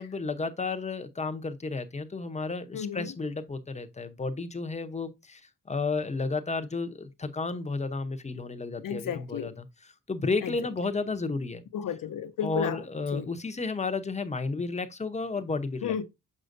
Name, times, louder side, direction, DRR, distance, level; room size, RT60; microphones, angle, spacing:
voice 1, 0.0-11.6 12.4-16.0, left 3 dB, 20° left, 0.8 m, -32 dB
voice 2, 2.7-3.1 8.8-9.5 10.4-10.5 11.7-12.8 13.1-13.3 15.8-16.0, left 8 dB, 75° left, 0.8 m, -32 dB
6.5 x 5.5 x 2.6 m
cardioid pair, 100°, 33 cm